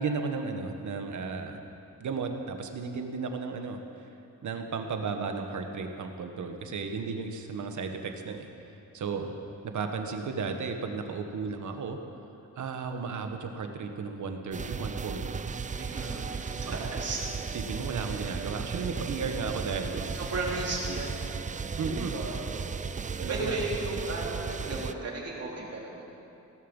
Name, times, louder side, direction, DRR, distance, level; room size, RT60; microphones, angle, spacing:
voice 1, 0.0-1.6 2.0-3.8 4.4-8.5 8.9-9.3 9.7-12.0 12.6-15.4 16.7-16.9 17.5-20.1 21.8-22.2 23.2-23.6, right 5 dB, 65° right, 5 dB, 1.5 m, -34 dB
sound 1, 14.5-24.9, right 5 dB, 25° right, 0.4 m, -35 dB
voice 2, 15.8-17.2 18.0-18.4 20.1-21.2 21.8-22.6 23.1-26.1, right 2 dB, 50° right, -4 dB, 3.7 m, -35 dB
17.5 x 14.5 x 5.5 m, 2.8 s
wide cardioid pair, 130°, 31 cm